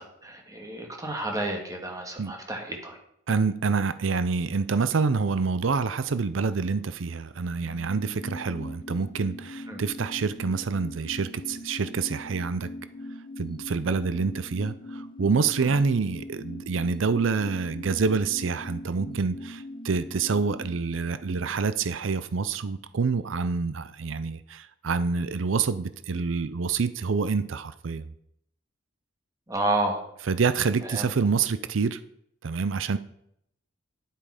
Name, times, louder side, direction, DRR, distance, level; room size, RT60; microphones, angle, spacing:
voice 1, 0.0-3.0 9.7-9.8 15.6-15.8 29.5-30.0 30.9-31.0, right 2 dB, 20° right, 2 dB, 1.9 m, -30 dB
voice 2, 3.3-12.7 13.4-28.1 30.3-32.0 32.4-33.0, right 5 dB, 80° right, 13 dB, 0.5 m, -27 dB
sound 1, 7.5-22.5 22.8-22.9, left 1 dB, 25° left, 1.1 m, -41 dB
10.0 x 8.8 x 4.9 m, 0.73 s
head